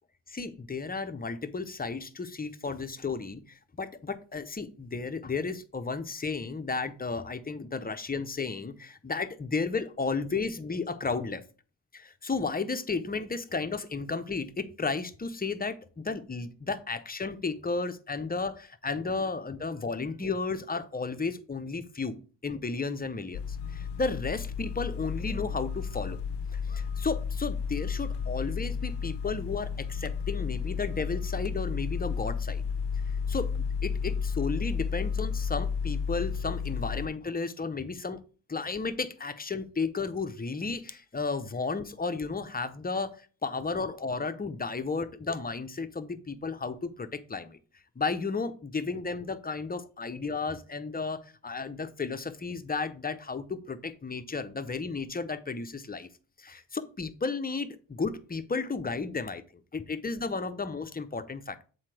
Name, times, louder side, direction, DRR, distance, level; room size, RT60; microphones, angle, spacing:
voice 1, 0.3-11.4 11.9-22.1 22.4-26.2 26.5-32.6 33.3-38.2 38.5-47.6 48.0-56.1 56.4-59.4 59.7-61.7, left 4 dB, 20° left, 10 dB, 0.6 m, -33 dB
sound 1, 23.3-37.1, left 6 dB, 70° left, 0.5 m, -32 dB
7.3 x 4.6 x 3.3 m, 0.37 s
cardioid pair, 80°, 43 cm